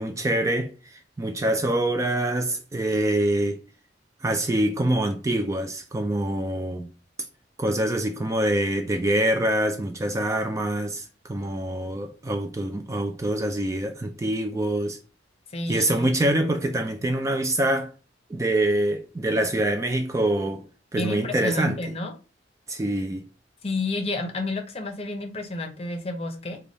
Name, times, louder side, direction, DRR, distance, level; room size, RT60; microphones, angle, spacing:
voice 1, 0.0-3.6 4.2-6.9 7.6-15.0 15.7-17.9 18.3-20.6 20.9-21.8 22.7-23.3, right 1 dB, 15° right, 0.3 m, -25 dB
voice 2, 15.5-16.1 20.9-22.1 23.6-26.6, left 2 dB, 35° left, 0.7 m, -30 dB
3.4 x 2.3 x 3.8 m
head